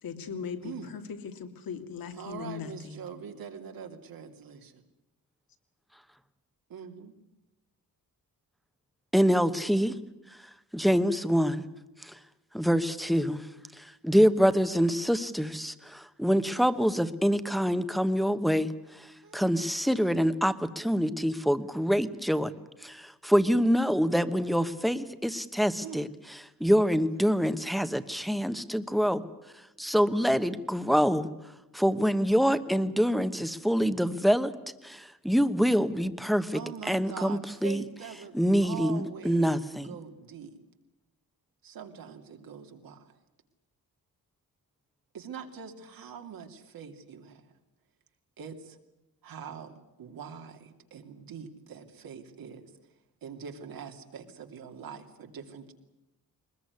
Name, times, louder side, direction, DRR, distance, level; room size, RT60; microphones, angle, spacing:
voice 1, 0.0-3.0, left 6 dB, 80° left, 7 dB, 2.7 m, -39 dB
voice 2, 2.2-4.7 6.7-7.1 19.2-19.5 25.8-26.0 36.5-38.3 38.6-40.5 41.6-43.0 45.1-47.3 48.4-48.6 49.2-49.7 50.0-50.6 50.9-52.6 53.2-55.7, right 7 dB, 75° right, 5 dB, 2.9 m, -43 dB
voice 3, 9.1-10.0 10.7-11.6 12.5-13.4 14.0-18.7 19.3-22.5 22.8-29.2 29.8-31.3 31.7-34.5 34.8-37.8 38.3-39.9, equal, ahead, 11 dB, 1.0 m, -25 dB
22.5 x 21.0 x 9.6 m, 0.96 s
wide cardioid pair, 160°, 35 cm